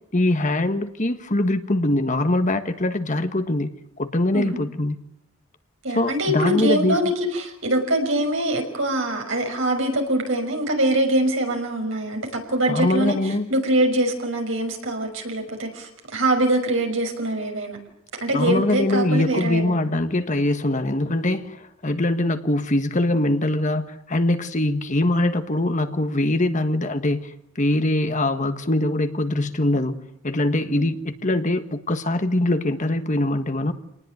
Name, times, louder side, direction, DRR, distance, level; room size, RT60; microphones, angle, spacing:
voice 1, 0.1-3.7 4.0-5.0 5.9-7.0 12.7-13.5 18.3-29.9 30.2-33.7, left 1 dB, 35° left, 9 dB, 1.5 m, -22 dB
voice 2, 5.8-17.8 18.2-19.9 30.7-30.9, right 1 dB, 65° right, 3 dB, 6.3 m, -23 dB
28.0 x 19.5 x 9.3 m, 0.76 s
head